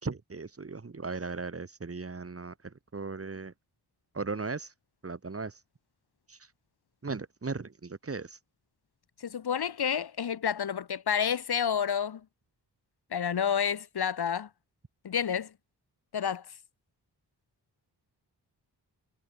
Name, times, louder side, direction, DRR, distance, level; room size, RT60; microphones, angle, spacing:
voice 1, 0.0-3.5 4.1-4.7 5.0-5.5 6.3-6.4 7.0-8.4, right 4 dB, 35° right, 2.1 m, -37 dB
voice 2, 9.2-12.2 13.1-14.5 15.0-15.5 16.1-16.4, left 8 dB, 65° left, 1.4 m, -29 dB
wide cardioid pair, 95°, 41 cm